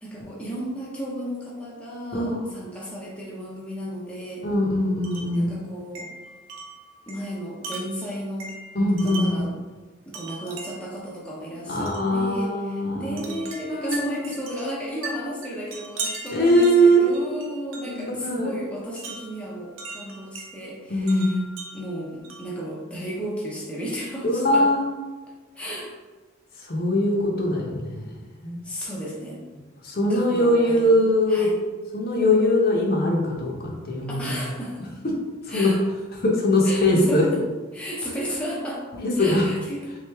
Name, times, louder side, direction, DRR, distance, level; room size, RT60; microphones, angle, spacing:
voice 1, 0.0-4.5 5.3-6.1 7.1-8.6 9.0-9.5 10.1-21.4 21.7-24.7 25.5-26.0 28.6-29.4 30.1-31.6 34.1-34.9 35.5-35.8 36.6-37.4 37.7-38.9 39.2-39.8, equal, 5° left, -5 dB, 0.6 m, -34 dB
voice 2, 2.1-2.5 4.4-5.6 8.7-9.5 11.7-13.3 13.7-14.2 16.3-17.1 17.8-18.5 20.9-21.5 24.2-24.8 26.6-28.9 29.8-31.5 31.9-34.4 35.5-35.7 36.2-37.3 38.9-39.4, equal, 50° left, -1 dB, 0.8 m, -22 dB
Wind chime, 5.0-5.4 6.0-9.5 10.1-11.0 11.9-12.1 13.2-18.1 19.0-20.5 21.1-22.6, right 3 dB, 80° right, 0.7 m, -38 dB
3.5 x 3.3 x 3.4 m, 1.3 s
head